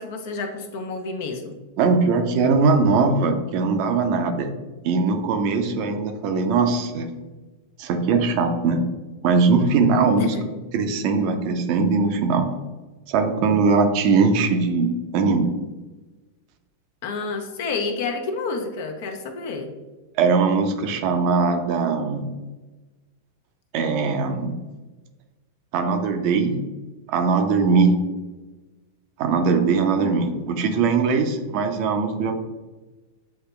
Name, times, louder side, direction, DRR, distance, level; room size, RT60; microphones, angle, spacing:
voice 1, 0.0-1.5 10.2-10.4 17.0-19.7 30.0-30.4, left 4 dB, 55° left, 4 dB, 0.7 m, -29 dB
voice 2, 1.8-4.5 4.8-7.1 7.8-8.8 9.2-10.3 10.7-12.5 13.1-15.5 20.2-22.3 23.7-24.5 25.7-26.6 27.1-28.0 29.2-32.3, right 4 dB, 50° right, 6 dB, 0.6 m, -20 dB
7.5 x 2.8 x 2.3 m, 1.2 s
figure-of-eight pair, 95°, 0 cm